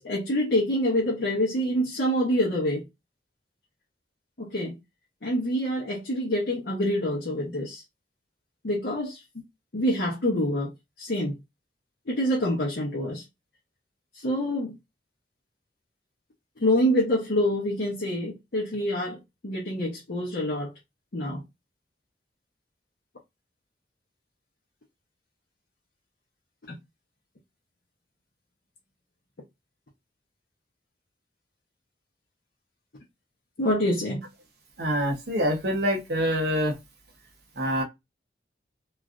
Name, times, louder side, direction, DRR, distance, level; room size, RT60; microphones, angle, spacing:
voice 1, 0.0-2.8 4.4-4.8 5.2-7.8 8.6-9.2 9.7-10.7 11.0-11.3 12.1-13.2 14.1-14.7 16.6-20.7 21.1-21.4 26.7-26.8 33.6-34.2, equal, 60° left, 0.8 m, -26 dB
voice 2, 34.8-36.7 37.6-37.8, equal, 60° right, 0.8 m, -25 dB
3.1 x 2.4 x 2.4 m
head